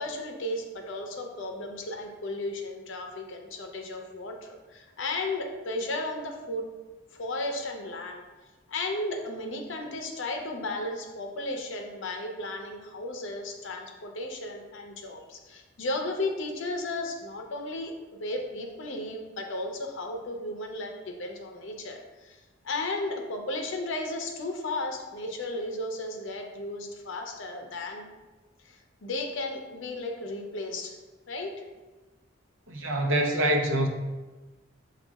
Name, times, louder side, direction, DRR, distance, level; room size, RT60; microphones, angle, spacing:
voice 1, 0.0-6.7 7.1-8.2 8.7-28.1 28.6-31.0 31.3-31.6, left 2 dB, 70° left, 3 dB, 0.6 m, -34 dB
voice 2, 32.7-33.9, right 1 dB, 75° right, 1 dB, 0.6 m, -25 dB
7.0 x 2.4 x 2.3 m, 1.2 s
head